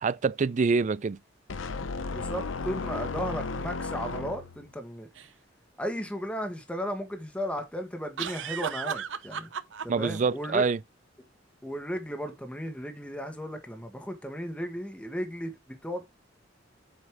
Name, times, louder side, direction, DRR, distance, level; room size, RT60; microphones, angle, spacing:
voice 1, 0.0-1.2 9.9-10.8, right 4 dB, 40° right, 0.4 m, -26 dB
sound 1, 1.5-4.7, left 4 dB, 90° left, 0.7 m, -34 dB
voice 2, 2.1-5.1 5.8-9.5 9.8-10.7 11.6-16.1, equal, 5° left, 1.4 m, -35 dB
sound 2, 5.1-5.3 8.2-10.1, right 7 dB, 80° right, 0.7 m, -34 dB
7.9 x 5.3 x 3.5 m
head